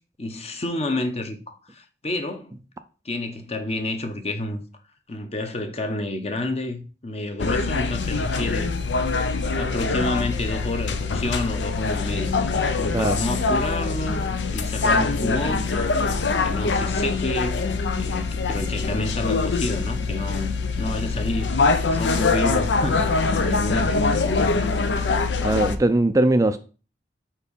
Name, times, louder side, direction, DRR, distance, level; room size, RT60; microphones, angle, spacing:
voice 1, 0.2-2.6 3.0-4.6 5.1-8.7 9.2-12.3 12.8-14.2 14.5-16.1 16.4-17.6 18.0-24.5, left 2 dB, 35° left, 0.9 m, -29 dB
sound 1, 7.4-25.8, left 4 dB, 90° left, 0.6 m, -24 dB
voice 2, 25.4-26.6, right 2 dB, 20° right, 0.4 m, -20 dB
4.7 x 4.5 x 5.2 m
head